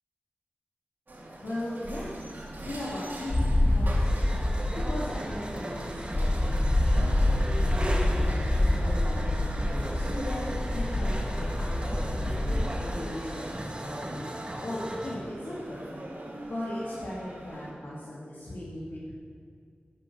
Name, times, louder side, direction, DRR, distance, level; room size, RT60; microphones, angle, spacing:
sound 1, 1.1-17.7, right 1 dB, 60° right, 2.9 m, -42 dB
voice 1, 1.4-2.1 2.6-4.3 4.9-14.3 14.6-16.0 16.5-19.1, left 1 dB, 75° left, -9 dB, 2.9 m, -38 dB
sound 2, 3.3-12.6, left 1 dB, 35° left, 1.7 m, -26 dB
sound 3, 4.0-15.2, right 1 dB, 30° right, 1.8 m, -38 dB
11.5 x 10.0 x 6.5 m, 2.3 s
wide cardioid pair, 55°, 4 cm